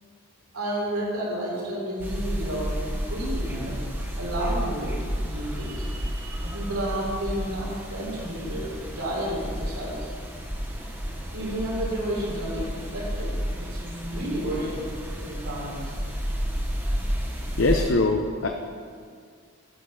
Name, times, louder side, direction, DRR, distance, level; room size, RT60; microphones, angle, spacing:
voice 1, 0.5-3.8 4.2-10.1 11.3-14.8 15.2-15.9, right 1 dB, 90° right, -4 dB, 3.4 m, -31 dB
sound 1, 2.0-17.9, equal, 10° right, 0.9 m, -31 dB
voice 2, 17.6-18.5, left 2 dB, 60° left, 3 dB, 0.6 m, -22 dB
12.5 x 6.6 x 5.7 m, 2.1 s
head